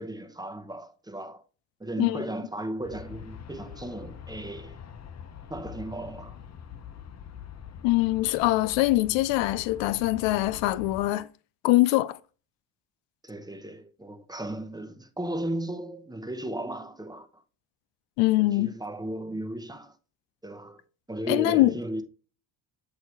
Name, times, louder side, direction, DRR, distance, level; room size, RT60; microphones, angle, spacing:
voice 1, 0.0-1.4 1.8-4.8 5.5-6.4 13.2-17.4 18.4-19.9 20.4-20.8 21.1-22.0, right 1 dB, 10° right, 0.8 m, -35 dB
Aircraft, 2.8-11.1, left 8 dB, 40° left, 0.8 m, -44 dB
voice 2, 7.8-11.3 11.6-12.2 18.2-18.7 21.3-21.7, left 17 dB, 90° left, 0.5 m, -23 dB
8.0 x 2.8 x 4.4 m
supercardioid pair, 75°, 42 cm